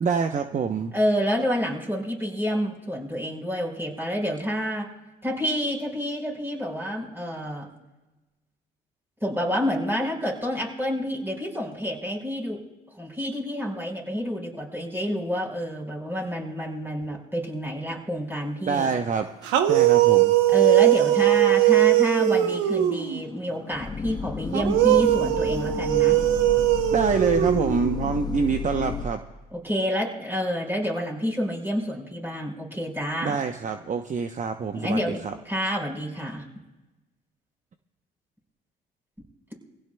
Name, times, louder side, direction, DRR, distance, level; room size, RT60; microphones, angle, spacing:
voice 1, 0.0-0.9 18.7-19.3 19.7-20.3 26.9-29.2 33.2-35.0 35.2-35.3, right 6 dB, 40° right, 7 dB, 0.9 m, -26 dB
voice 2, 0.9-4.9 5.2-7.7 9.2-12.6 13.0-18.9 20.5-26.2 29.5-33.4 34.7-36.4, equal, 10° right, -1 dB, 4.9 m, -28 dB
sound 1, 19.4-23.2 24.5-28.1, right 14 dB, 85° right, 0.9 m, -20 dB
sound 2, 21.6-21.7 22.2-29.1, left 6 dB, 20° left, 0.6 m, -33 dB
24.5 x 16.5 x 2.3 m, 1.1 s
supercardioid pair, 65°, 20 cm